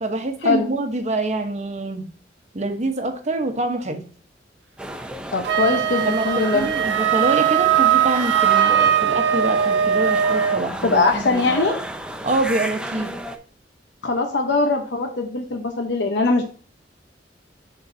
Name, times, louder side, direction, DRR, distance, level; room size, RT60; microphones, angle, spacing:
voice 1, 0.0-2.1 2.5-4.1 6.0-11.6 12.2-13.1, right 2 dB, 40° right, 6 dB, 1.0 m, -25 dB
sound 1, 4.8-13.4, right 1 dB, 5° right, 0.5 m, -32 dB
voice 2, 5.3-6.7 10.8-11.8 14.0-16.4, left 3 dB, 75° left, 3 dB, 0.9 m, -21 dB
Wind instrument woodwind instrument, 5.4-10.6, right 9 dB, 80° right, 0.6 m, -19 dB
11.0 x 3.9 x 2.7 m, 0.42 s
head